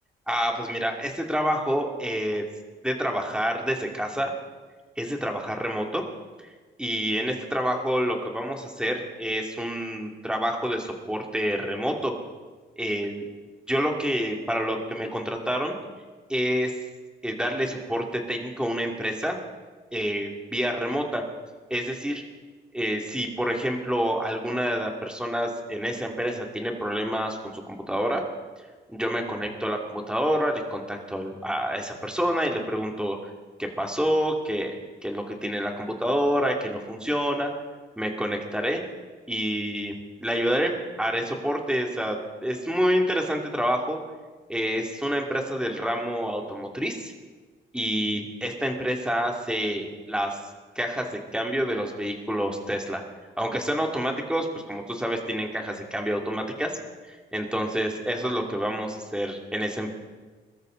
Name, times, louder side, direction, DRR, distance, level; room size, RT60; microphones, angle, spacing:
voice 1, 0.3-2.5 2.8-4.3 5.0-6.0 6.8-12.1 12.8-13.2 13.7-15.8 16.3-16.8 17.2-19.4 19.9-21.2 21.7-22.2 22.7-28.2 28.9-33.2 33.6-37.5 38.0-38.8 39.3-39.9 40.2-44.0 44.5-47.1 47.7-50.4 50.7-53.0 53.4-56.8 57.1-59.9, equal, 5° right, 1 dB, 2.7 m, -28 dB
21.5 x 13.5 x 4.0 m, 1.4 s
cardioid pair, 90°, 20 cm